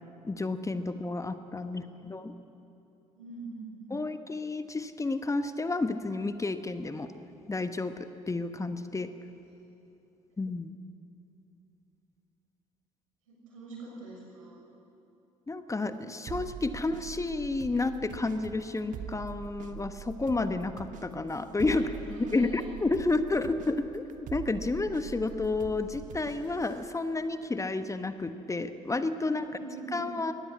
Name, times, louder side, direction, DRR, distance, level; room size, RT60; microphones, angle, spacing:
voice 1, 0.2-2.3 3.9-7.1 7.5-9.1 10.4-10.8 15.5-21.8 22.3-29.5 29.9-30.3, left 3 dB, 20° left, 10 dB, 1.2 m, -31 dB
voice 2, 3.1-3.9 13.3-14.6 21.7-22.7 29.2-30.1, right 3 dB, 75° right, -2 dB, 6.5 m, -44 dB
sound 1, 16.3-26.9, right 8 dB, 50° right, 1.4 m, -44 dB
23.0 x 19.5 x 8.2 m, 2.8 s
figure-of-eight pair, 50°, 17 cm